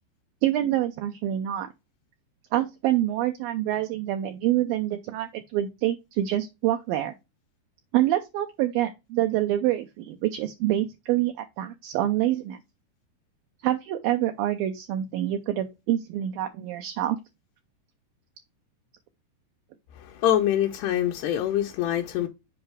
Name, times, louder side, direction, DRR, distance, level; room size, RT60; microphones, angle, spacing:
voice 1, 0.4-1.7 2.5-7.1 7.9-12.6 13.6-17.2, right 13 dB, 80° right, 2.1 m, -26 dB
voice 2, 20.0-22.3, left 11 dB, 80° left, 2.7 m, -25 dB
8.0 x 4.8 x 3.3 m
omnidirectional pair, 5.0 m